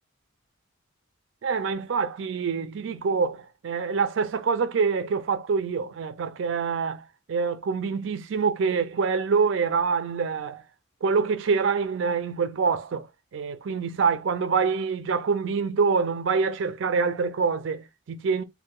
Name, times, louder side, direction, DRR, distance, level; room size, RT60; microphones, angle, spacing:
voice 1, 1.4-10.6 11.0-13.1 13.3-18.4, right 5 dB, 65° right, 0.4 m, -26 dB
3.6 x 2.2 x 2.3 m
head